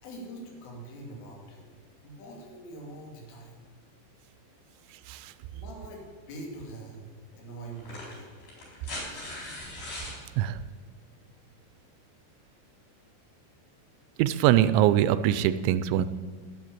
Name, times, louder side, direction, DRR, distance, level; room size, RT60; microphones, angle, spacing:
voice 1, 0.0-1.8 2.0-3.6 5.5-7.1 7.4-8.3, right 1 dB, 85° left, 0 dB, 5.2 m, -43 dB
sound 1, 6.6-6.7 7.7-10.2 11.7-11.8, left 1 dB, 50° left, 5.9 m, -39 dB
voice 2, 14.2-16.1, right 12 dB, 85° right, 14 dB, 2.9 m, -23 dB
11.0 x 10.5 x 8.8 m, 1.5 s
omnidirectional pair, 5.5 m